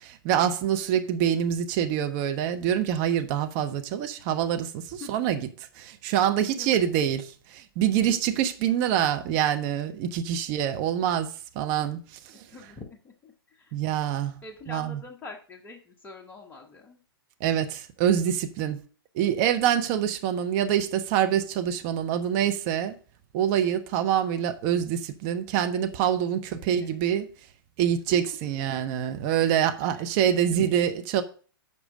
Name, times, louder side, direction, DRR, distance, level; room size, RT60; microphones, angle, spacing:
voice 1, 0.0-12.4 13.7-14.4 14.7-15.0 17.4-18.8 19.1-22.9 23.3-27.3 27.8-31.2, right 10 dB, 40° right, 1.1 m, -26 dB
voice 2, 6.6-6.9 12.5-13.8 14.4-17.0 26.3-27.0 28.1-28.4 29.6-30.7, left 4 dB, 15° left, 1.2 m, -45 dB
7.2 x 5.0 x 6.3 m
figure-of-eight pair, 110°, 13 cm